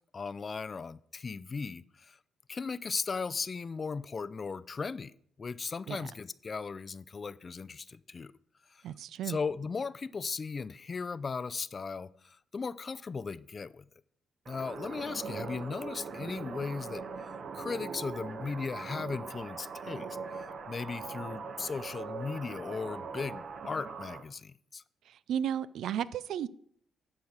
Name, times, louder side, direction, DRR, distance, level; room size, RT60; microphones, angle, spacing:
voice 1, 0.1-2.2 2.5-5.1 5.4-8.3 8.7-8.8 9.2-13.8 14.5-17.1 17.5-20.1 20.3-24.8, left 5 dB, 35° left, 17 dB, 0.4 m, -37 dB
voice 2, 8.8-9.4 25.3-26.5, right 9 dB, 75° right, 17 dB, 0.4 m, -33 dB
sound 1, 14.5-24.2, right 5 dB, 55° right, 1.0 m, -41 dB
10.5 x 4.8 x 6.5 m, 0.64 s
cardioid pair, 90°, 0 cm